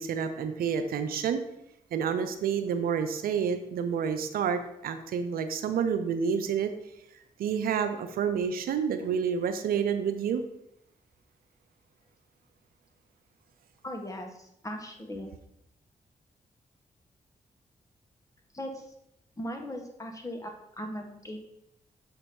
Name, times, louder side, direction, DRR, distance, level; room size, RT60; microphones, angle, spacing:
voice 1, 0.0-1.4 1.9-6.7 7.4-10.4, right 7 dB, 80° right, 8 dB, 0.5 m, -29 dB
voice 2, 13.8-15.3 18.5-18.9 19.4-21.4, equal, 20° left, 3 dB, 1.4 m, -38 dB
7.0 x 2.9 x 5.1 m, 0.79 s
supercardioid pair, 40°, 15 cm